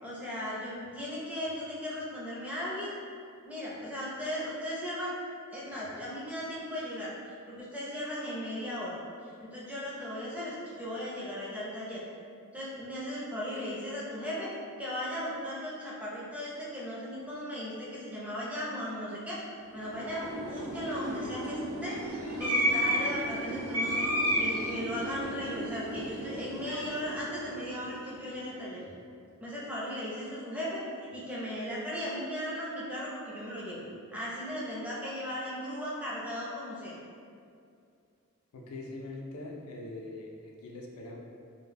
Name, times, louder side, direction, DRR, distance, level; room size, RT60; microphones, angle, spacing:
voice 1, 0.0-2.9 3.4-5.2 5.5-9.0 9.4-12.0 12.5-14.5 14.8-19.4 19.7-22.0 22.4-24.1 24.4-28.8 29.4-30.8 31.1-33.8 34.1-36.9, equal, 5° right, -7 dB, 0.5 m, -37 dB
sound 1, 19.7-28.2, equal, 75° right, 0.7 m, -32 dB
voice 2, 38.5-40.3 40.6-41.2, left 2 dB, 90° left, -1 dB, 0.4 m, -42 dB
2.1 x 2.0 x 3.3 m, 2.4 s
head